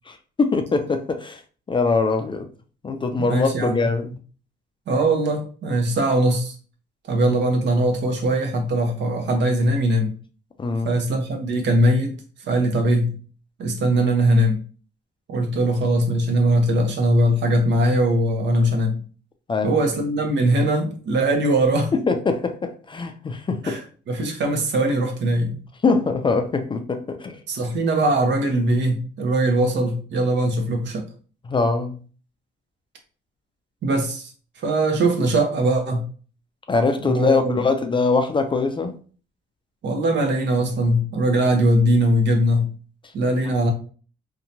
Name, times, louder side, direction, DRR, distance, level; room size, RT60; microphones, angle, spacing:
voice 1, 0.1-1.4 1.7-2.5 2.8-4.1 10.6-10.9 19.5-19.8 21.9-23.8 25.8-27.4 31.5-32.0 36.7-38.9, left 4 dB, 25° left, 0.4 m, -22 dB
voice 2, 3.2-3.8 4.9-6.6 7.1-10.1 10.8-12.1 12.5-13.1 13.6-14.6 15.3-19.0 19.6-21.9 23.6-23.8 24.1-25.6 27.5-31.0 33.8-34.3 34.6-36.0 37.0-37.6 39.8-42.7 43.1-43.7, right 1 dB, 65° right, 0.8 m, -21 dB
2.7 x 2.2 x 2.6 m
cardioid pair, 90°, 20 cm